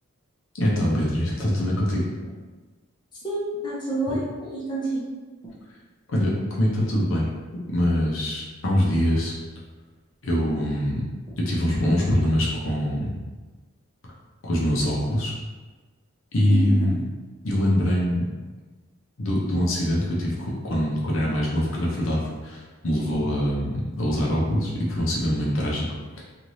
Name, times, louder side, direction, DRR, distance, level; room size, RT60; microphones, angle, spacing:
voice 1, 0.5-2.0 6.1-7.3 7.7-9.3 10.2-11.0 11.4-13.1 14.4-15.3 16.3-16.9 17.4-18.2 19.2-25.9 26.2-26.3, equal, 70° left, -5 dB, 0.7 m, -23 dB
voice 2, 3.2-5.0 16.5-16.8, right 2 dB, 20° left, -8 dB, 0.7 m, -28 dB
3.1 x 2.5 x 2.7 m, 1.3 s
head